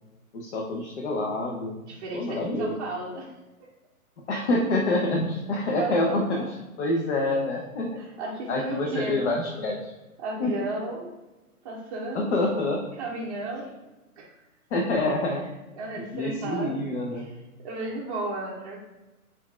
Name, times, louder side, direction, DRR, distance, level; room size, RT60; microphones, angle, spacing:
voice 1, 0.3-1.8 2.1-2.7 4.3-6.5 6.8-7.9 8.5-9.9 10.4-10.5 12.1-12.8 14.7-15.5 16.1-17.2, left 2 dB, 45° left, 0 dB, 0.8 m, -26 dB
voice 2, 1.9-3.3 5.7-6.5 8.0-9.3 10.2-11.1 11.6-12.4 12.9-13.7 14.2-14.4 15.8-16.8 17.1-18.8, right 2 dB, 25° right, -6 dB, 0.6 m, -34 dB
4.3 x 2.5 x 4.2 m, 1.1 s
figure-of-eight pair, 130°, 45 cm